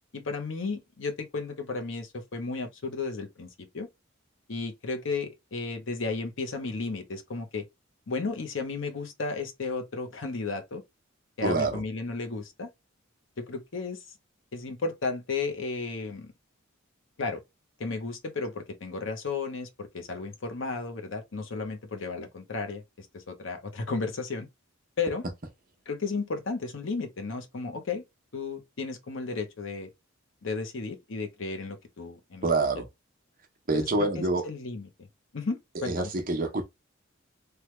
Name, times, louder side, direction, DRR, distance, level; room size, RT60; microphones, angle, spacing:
voice 1, 0.1-3.9 4.5-7.6 8.1-10.8 11.4-12.7 13.4-14.0 14.5-16.3 17.2-17.4 17.8-24.5 25.0-25.2 25.9-28.0 28.3-29.9 30.4-32.4 33.7-34.9 35.3-36.1, left 4 dB, 65° left, 0.7 m, -34 dB
voice 2, 11.4-11.8 32.4-32.8 33.7-34.4 35.8-36.6, right 3 dB, 45° right, 0.8 m, -26 dB
3.2 x 2.2 x 3.0 m
head